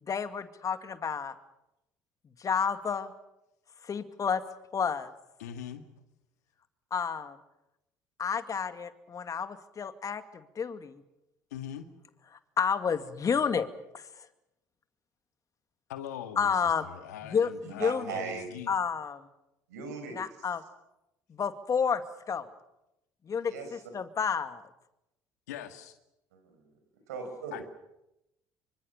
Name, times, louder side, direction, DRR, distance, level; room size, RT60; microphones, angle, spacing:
voice 1, 0.1-1.4 2.4-3.1 3.8-4.4 4.7-5.1 6.9-7.4 8.2-11.0 12.6-13.7 13.9-14.0 16.4-16.8 17.3-17.5 17.8-18.2 18.7-19.3 20.1-20.6 21.3-22.0 22.3-22.5 23.3-24.6, left 6 dB, 40° left, 9 dB, 2.3 m, -30 dB
voice 2, 5.4-5.8 11.5-11.9 15.9-18.7 25.5-26.0 27.5-27.6, left 10 dB, 90° left, 7 dB, 2.1 m, -42 dB
voice 3, 17.6-18.4 19.7-20.5 23.4-23.7 26.3-26.7 27.1-27.6, right 5 dB, 90° right, 6 dB, 5.9 m, -39 dB
26.5 x 25.0 x 7.1 m, 0.88 s
hypercardioid pair, 65°, 9 cm